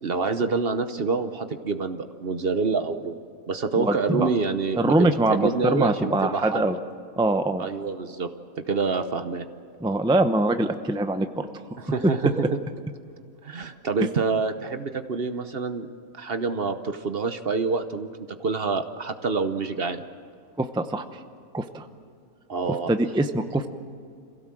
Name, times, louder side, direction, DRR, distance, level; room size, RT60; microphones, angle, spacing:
voice 1, 0.0-3.2 3.5-6.7 7.6-8.3 8.7-9.5 11.8-12.6 13.4-18.1 18.4-20.0 22.5-22.9, right 4 dB, 45° right, 8 dB, 1.0 m, -27 dB
voice 2, 3.8-4.3 4.8-6.8 7.2-7.6 9.8-11.5 12.0-12.1 12.4-12.5 20.6-21.0 21.5-21.9 22.7-23.7, right 2 dB, 5° right, 8 dB, 0.6 m, -23 dB
27.0 x 17.0 x 7.6 m, 2.4 s
omnidirectional pair, 1.5 m